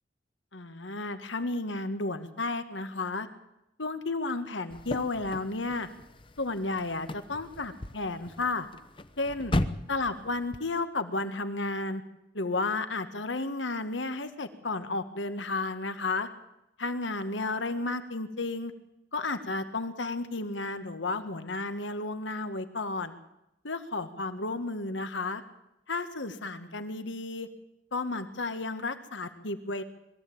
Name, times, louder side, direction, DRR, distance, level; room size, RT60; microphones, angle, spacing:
voice 1, 0.5-3.3 3.8-5.9 6.4-8.7 9.2-9.6 9.9-12.0 12.3-16.3 16.8-18.7 19.1-23.1 23.6-25.4 25.9-27.5 27.9-29.8, left 3 dB, 85° left, 9 dB, 1.7 m, -32 dB
sound 1, 4.7-10.6, left 1 dB, 30° left, 0.9 m, -36 dB
21.5 x 14.5 x 8.8 m, 0.87 s
head